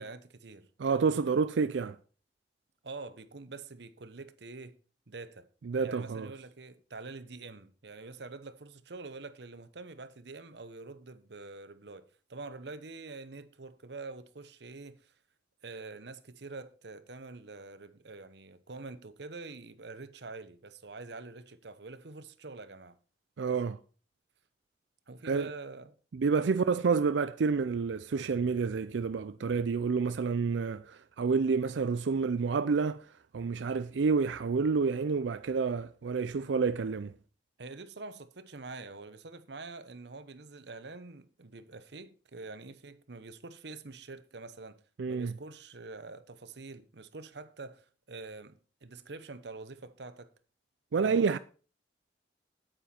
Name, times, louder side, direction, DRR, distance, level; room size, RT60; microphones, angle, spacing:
voice 1, 0.0-0.7 2.8-4.8 5.1-5.5 5.8-15.1 15.6-23.0 23.5-23.6 25.1-26.0 26.4-26.6 37.6-44.8 45.1-50.3 51.0-51.4, right 3 dB, 70° right, 0.9 m, -46 dB
voice 2, 0.8-2.0 5.7-6.3 23.4-23.8 25.2-25.5 26.1-33.1 33.3-37.1 45.0-45.3 50.9-51.4, right 5 dB, 85° right, 0.4 m, -29 dB
9.1 x 9.0 x 4.4 m
head